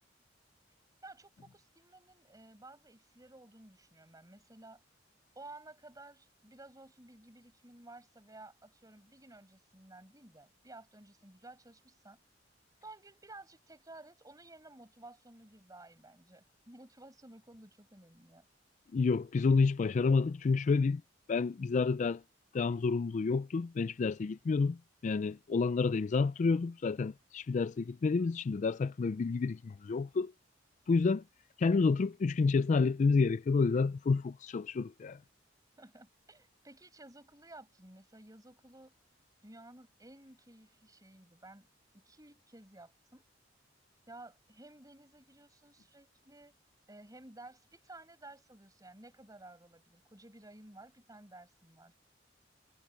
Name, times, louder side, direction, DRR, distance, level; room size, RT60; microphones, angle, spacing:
voice 1, 1.0-4.8 5.3-12.2 12.8-18.5 35.8-38.9 39.4-41.7 41.9-43.2 44.1-46.5 46.9-51.9, right 2 dB, 20° right, 6.0 m, -54 dB
voice 2, 18.9-21.0 21.3-22.2 22.5-24.8 25.0-30.3 30.9-31.2 31.6-35.2, left 4 dB, 40° left, 0.3 m, -29 dB
head